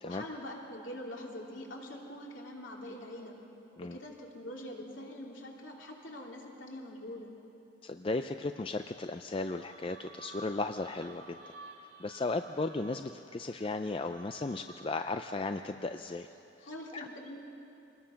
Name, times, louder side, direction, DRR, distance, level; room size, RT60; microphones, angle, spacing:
voice 1, 0.0-3.4 3.8-7.3 16.6-17.4, left 1 dB, 65° left, -1 dB, 3.2 m, -44 dB
voice 2, 7.8-11.5 12.0-16.3 16.9-17.1, left 3 dB, 25° left, 7 dB, 0.4 m, -35 dB
sound 1, 9.4-15.1, right 2 dB, 55° right, 2.4 m, -53 dB
26.5 x 20.5 x 5.8 m, 2.8 s
head